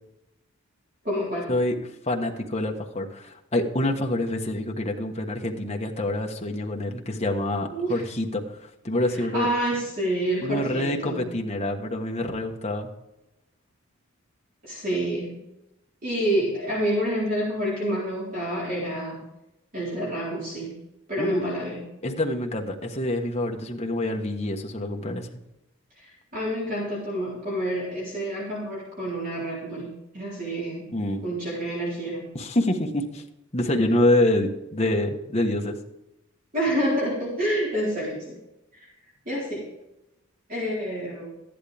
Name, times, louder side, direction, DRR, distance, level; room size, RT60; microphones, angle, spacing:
voice 1, 1.0-1.5 7.7-8.0 9.1-11.2 14.6-15.4 16.0-19.2 19.7-20.8 21.1-21.8 26.0-30.9 31.2-32.3 36.5-38.4 38.7-38.9 39.3-39.7 40.5-41.3, right 1 dB, 40° right, -7 dB, 4.1 m, -28 dB
voice 2, 2.0-9.5 10.4-12.9 21.2-21.5 22.0-25.3 30.9-31.2 32.3-33.2 33.5-35.8, left 1 dB, 30° left, 2 dB, 1.3 m, -26 dB
14.0 x 11.0 x 3.5 m, 0.90 s
head